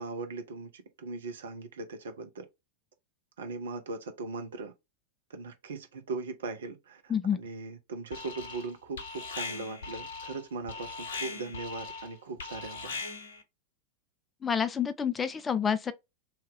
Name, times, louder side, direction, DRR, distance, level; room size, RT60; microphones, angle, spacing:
voice 1, 0.0-2.4 3.4-4.7 5.3-13.0, right 3 dB, 65° right, 0.7 m, -39 dB
Alarm, 8.1-8.7 9.0-13.4, left 4 dB, 60° left, 0.8 m, -40 dB
voice 2, 14.4-15.9, left 7 dB, 15° left, 0.3 m, -28 dB
2.8 x 2.3 x 3.6 m
figure-of-eight pair, 90°, 0 cm